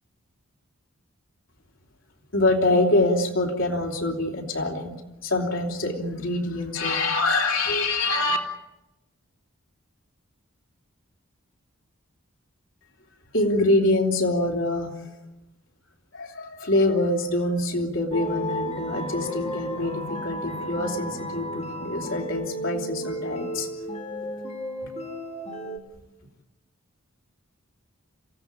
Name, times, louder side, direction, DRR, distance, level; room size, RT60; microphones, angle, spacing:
voice 1, 2.3-4.9 5.2-8.4 13.3-15.1 16.1-23.7 24.8-24.9, left 2 dB, 60° left, 1 dB, 3.3 m, -25 dB
sound 1, 18.1-25.8, equal, 30° left, 2.2 m, -33 dB
27.5 x 16.0 x 9.7 m, 0.99 s
head